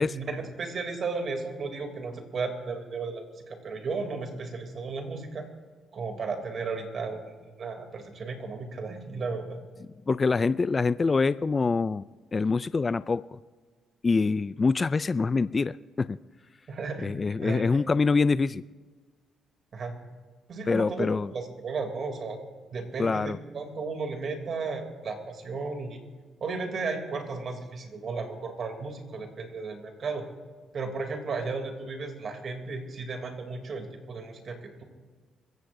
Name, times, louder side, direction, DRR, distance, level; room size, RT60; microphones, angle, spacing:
voice 1, 0.0-5.5 5.9-7.2 7.6-9.6 16.7-17.1 17.4-17.7 19.7-19.9 20.5-22.4 22.7-26.0 26.4-30.3 30.7-34.8, right 4 dB, 50° right, 4 dB, 2.9 m, -34 dB
voice 2, 10.1-12.0 12.3-13.4 14.0-16.2 17.0-18.6 20.7-21.3 23.0-23.4, left 4 dB, 30° left, 16 dB, 0.3 m, -25 dB
25.5 x 15.5 x 2.7 m, 1.4 s
cardioid pair, 90°, 0 cm